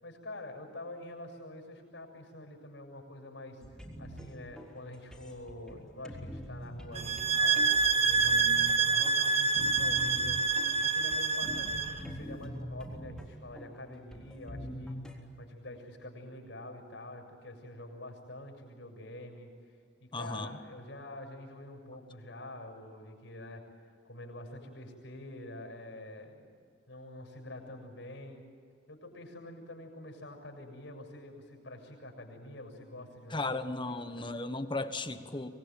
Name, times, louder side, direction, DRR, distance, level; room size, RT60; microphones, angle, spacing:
voice 1, 0.0-3.6 4.0-10.4 10.8-19.5 20.0-23.6 24.0-26.5 26.9-28.4 28.9-34.3, left 1 dB, 75° left, 3 dB, 7.0 m, -46 dB
sound 1, 3.6-15.2, equal, 5° left, 3.6 m, -44 dB
sound 2, 7.0-12.0, right 4 dB, 35° right, 1.5 m, -27 dB
voice 2, 20.1-20.6 33.3-35.5, left 2 dB, 25° left, 9 dB, 1.3 m, -35 dB
25.5 x 20.5 x 9.1 m, 2.3 s
head